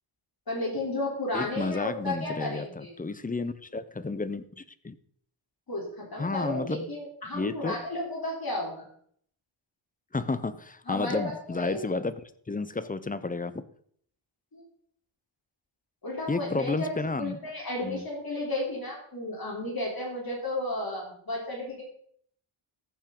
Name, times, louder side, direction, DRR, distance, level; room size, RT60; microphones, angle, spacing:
voice 1, 0.5-2.9 5.7-8.9 10.9-11.9 14.5-14.6 16.0-21.8, left 1 dB, 45° left, -2 dB, 3.6 m, -33 dB
voice 2, 1.3-5.0 6.2-6.9 7.3-7.8 10.1-12.1 12.5-13.6 16.3-17.4 17.8-18.1, left 3 dB, 15° left, 14 dB, 0.6 m, -31 dB
14.5 x 7.4 x 3.8 m, 0.62 s
wide cardioid pair, 95°, 49 cm